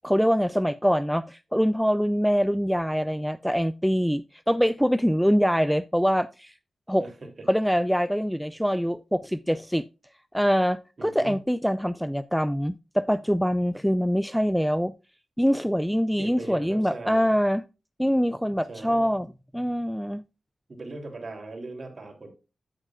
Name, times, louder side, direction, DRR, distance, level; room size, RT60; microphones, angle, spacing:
voice 1, 0.0-6.5 6.9-7.0 7.5-9.9 10.3-14.9 15.4-17.6 18.0-19.3 19.5-20.2, equal, ahead, 0.3 m, -24 dB
voice 2, 7.0-7.5 11.0-11.5 16.2-17.4 18.7-19.1 20.7-22.3, right 2 dB, 50° right, 2.9 m, -39 dB
9.0 x 8.8 x 2.3 m
cardioid pair, 65°, 0 cm